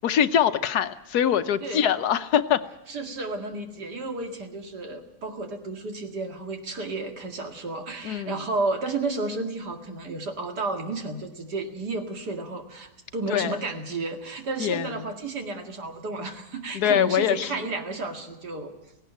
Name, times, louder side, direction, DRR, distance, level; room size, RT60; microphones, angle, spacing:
voice 1, 0.0-2.6 8.0-8.4 13.3-13.6 14.6-14.9 16.7-17.5, left 9 dB, 75° left, 11 dB, 1.4 m, -23 dB
voice 2, 2.9-18.7, right 3 dB, 90° right, 4 dB, 2.7 m, -32 dB
17.0 x 16.5 x 9.2 m, 0.95 s
omnidirectional pair, 1.7 m